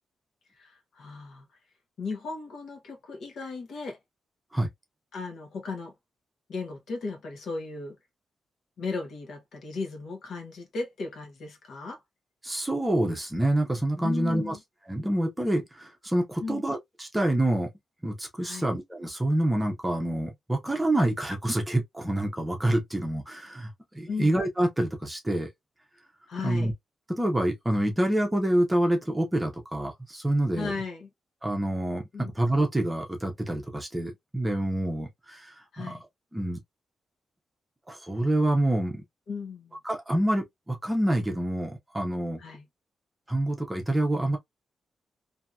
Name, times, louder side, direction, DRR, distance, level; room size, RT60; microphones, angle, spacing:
voice 1, 0.6-1.4 2.0-4.0 5.1-5.9 6.5-7.9 8.8-12.0 14.0-14.6 16.4-16.6 18.4-18.7 24.1-24.3 26.3-26.7 30.6-31.1 32.1-32.3 35.7-36.0 39.3-39.8 42.4-42.7, left 4 dB, 70° left, 1.0 m, -36 dB
voice 2, 12.4-14.6 14.9-17.7 18.0-23.7 23.9-25.5 26.4-26.7 27.1-30.7 31.4-36.0 36.3-36.6 37.9-39.0 39.8-42.4 43.3-44.4, right 1 dB, 10° right, 0.7 m, -27 dB
2.8 x 2.6 x 2.3 m
wide cardioid pair, 175°, 0 cm